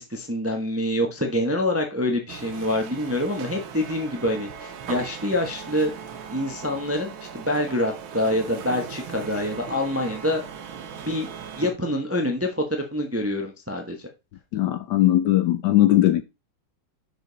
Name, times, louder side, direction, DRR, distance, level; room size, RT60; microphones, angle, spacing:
voice 1, 0.0-5.9 6.3-10.4 11.0-11.3 11.6-14.1, left 1 dB, 10° right, 0.6 m, -26 dB
sound 1, 2.3-11.7, right 7 dB, 85° right, 1.8 m, -38 dB
voice 2, 14.5-16.2, left 14 dB, 75° left, 1.0 m, -19 dB
6.3 x 5.3 x 3.9 m
omnidirectional pair, 2.2 m